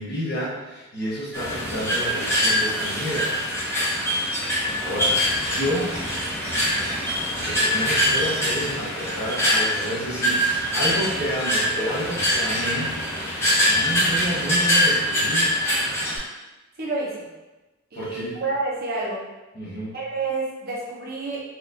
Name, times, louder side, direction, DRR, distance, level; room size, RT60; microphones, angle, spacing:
voice 1, 0.0-3.3 4.8-5.9 7.3-12.9 13.3-15.6 17.9-18.4 19.5-20.0, equal, 55° left, -7 dB, 1.2 m, -30 dB
sound 1, 1.3-16.2, equal, 15° left, 0.9 m, -23 dB
voice 2, 16.8-17.3 17.9-19.2 19.9-21.4, right 3 dB, 50° right, -4 dB, 0.8 m, -29 dB
4.2 x 2.6 x 2.7 m, 1.1 s
head